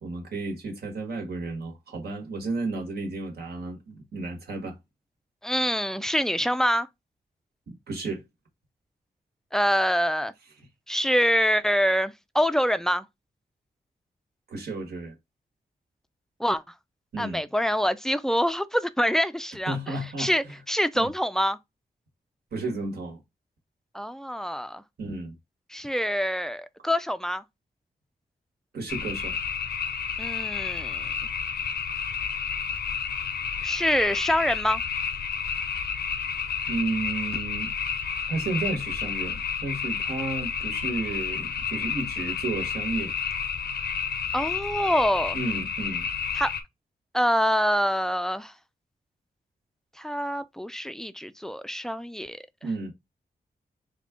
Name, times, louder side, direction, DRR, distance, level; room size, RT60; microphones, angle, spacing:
voice 1, 0.0-4.8 7.7-8.2 14.5-15.1 17.1-17.4 19.7-20.3 20.9-21.1 22.5-23.2 25.0-25.4 28.7-29.4 36.7-37.7 38.3-43.1 45.3-46.1 52.6-52.9, right 3 dB, 75° right, 1.3 m, -32 dB
voice 2, 5.4-6.9 9.5-10.3 10.9-13.1 16.4-16.6 17.2-21.6 23.9-24.8 25.7-27.4 30.2-31.1 33.6-34.8 44.3-45.4 46.3-46.5 47.1-48.5 50.0-52.4, equal, 5° left, 0.3 m, -25 dB
sound 1, 28.9-46.6, left 6 dB, 85° left, 0.6 m, -30 dB
3.6 x 2.4 x 3.6 m
wide cardioid pair, 110°, 16 cm